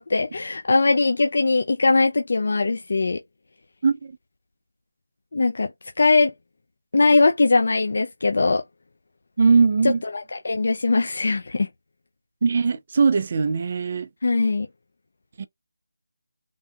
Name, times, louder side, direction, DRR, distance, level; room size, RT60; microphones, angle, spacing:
voice 1, 0.0-3.2 5.3-5.7 6.0-6.3 6.9-8.6 9.8-11.7 14.2-14.7, left 3 dB, 55° left, 0.5 m, -20 dB
voice 2, 9.4-10.0 12.4-14.1 15.4-15.5, right 5 dB, 35° right, 0.4 m, -20 dB
3.6 x 2.7 x 2.2 m
figure-of-eight pair, 170°, 0 cm